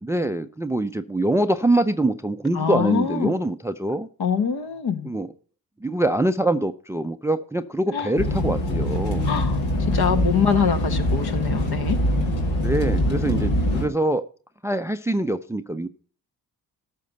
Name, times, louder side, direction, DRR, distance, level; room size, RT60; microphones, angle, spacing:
voice 1, 0.0-4.1 5.0-5.3 5.8-9.3 12.6-14.3 14.6-15.9, right 1 dB, 5° right, 0.5 m, -24 dB
voice 2, 2.5-3.3 4.2-5.1 7.9-8.1 9.2-9.6 9.9-12.0, left 6 dB, 55° left, 1.4 m, -24 dB
sound 1, 8.2-13.9, left 1 dB, 70° left, 2.4 m, -23 dB
13.0 x 5.8 x 5.4 m
hypercardioid pair, 45°, 46 cm